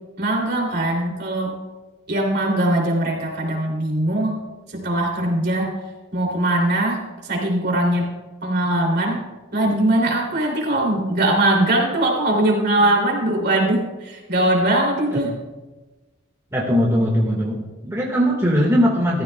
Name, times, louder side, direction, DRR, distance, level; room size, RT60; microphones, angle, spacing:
voice 1, 0.2-1.5 2.1-4.4 4.7-5.7 6.1-8.1 8.4-9.2 9.5-15.3, right 1 dB, 50° right, -1 dB, 3.0 m, -21 dB
voice 2, 16.5-19.2, equal, 15° right, -4 dB, 1.7 m, -20 dB
16.0 x 14.0 x 2.3 m, 1.2 s
head